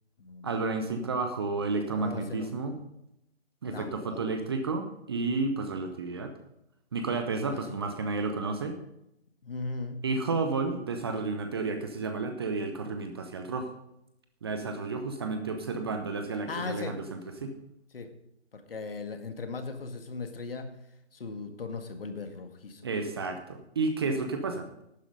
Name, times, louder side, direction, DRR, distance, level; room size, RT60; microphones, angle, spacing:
voice 1, 0.4-2.8 3.6-6.3 6.9-8.8 10.0-13.7 14.4-17.5 22.8-24.7, right 3 dB, 20° right, 6 dB, 0.8 m, -31 dB
voice 2, 1.9-2.5 3.7-4.4 7.5-7.8 9.4-10.0 16.5-17.0 17.9-18.1 18.5-20.7 21.1-22.8, left 4 dB, 55° left, 6 dB, 2.0 m, -38 dB
11.5 x 9.7 x 5.2 m, 0.81 s
figure-of-eight pair, 150°, 34 cm